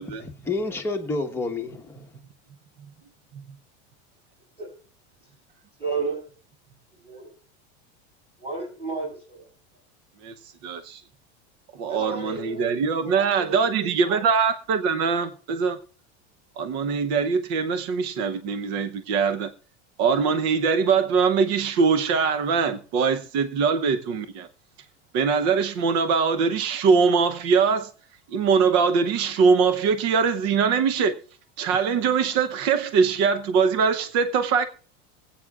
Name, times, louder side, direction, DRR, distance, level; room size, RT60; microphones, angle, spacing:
voice 1, 0.0-2.1, left 3 dB, 5° left, 1.2 m, -30 dB
voice 2, 5.8-6.3 6.9-7.3 8.4-9.4 11.9-12.8 13.0-14.3, right 4 dB, 15° right, 6.7 m, -33 dB
voice 3, 10.6-11.0 11.8-15.8 16.6-19.5 20.0-24.5 25.1-27.9 28.3-31.2 31.6-34.6, right 5 dB, 50° right, 0.9 m, -22 dB
24.5 x 8.5 x 2.4 m
supercardioid pair, 150°, 33 cm